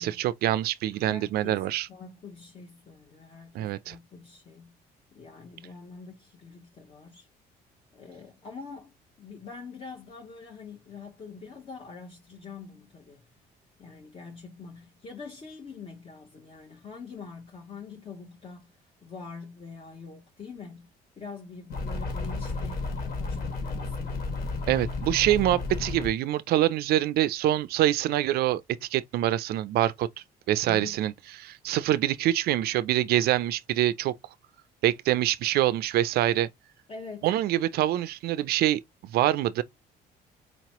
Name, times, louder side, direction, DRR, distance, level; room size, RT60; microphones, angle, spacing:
voice 1, 0.0-1.9 3.5-4.0 24.7-30.1 30.5-31.1 31.4-34.2 34.8-36.5 37.2-38.8 39.1-39.6, right 13 dB, 65° right, 0.4 m, -25 dB
voice 2, 0.9-4.7 5.1-7.3 7.9-13.3 13.8-20.9 21.2-24.1 30.7-31.1 36.9-37.3, left 4 dB, 35° left, 0.9 m, -45 dB
sound 1, 21.7-26.1, left 3 dB, 65° left, 1.9 m, -32 dB
4.3 x 2.9 x 2.9 m
cardioid pair, 110°, 17 cm